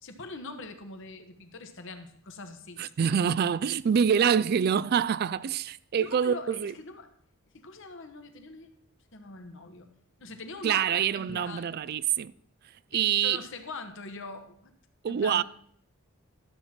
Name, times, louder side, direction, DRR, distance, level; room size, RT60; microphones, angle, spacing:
voice 1, 0.0-3.1 6.0-7.1 7.5-8.7 9.1-9.9 10.2-11.8 12.9-14.7 15.1-15.4, left 3 dB, 60° left, 1.2 m, -42 dB
voice 2, 2.8-6.7 10.6-12.3 12.9-13.4 15.0-15.4, right 8 dB, 45° right, 0.3 m, -26 dB
12.5 x 7.5 x 4.4 m
head